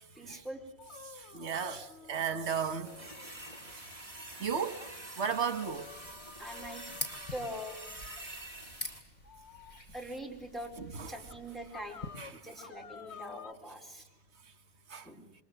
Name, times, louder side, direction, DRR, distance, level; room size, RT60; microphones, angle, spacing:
voice 1, 0.1-0.6 6.4-6.8 7.3-7.9 9.9-10.7 11.1-12.0 12.3-14.1 15.0-15.3, equal, ahead, 4.5 m, -43 dB
sound 1, 0.8-3.8 4.2-4.3 4.8-4.9 5.5-8.3 9.2-9.8 10.6-10.7 11.3-11.4 11.7-13.5, left 7 dB, 75° left, 1.5 m, -52 dB
voice 2, 1.1-2.9 3.7-3.8 4.4-4.8 5.2-5.9 10.8-11.1 12.2-12.3 14.9-15.1, right 7 dB, 85° right, 1.7 m, -35 dB
sound 2, 2.8-9.0, right 1 dB, 30° right, 3.3 m, -47 dB
sound 3, 5.7-12.2, left 2 dB, 40° left, 3.4 m, -46 dB
28.0 x 23.5 x 8.1 m
omnidirectional pair, 1.1 m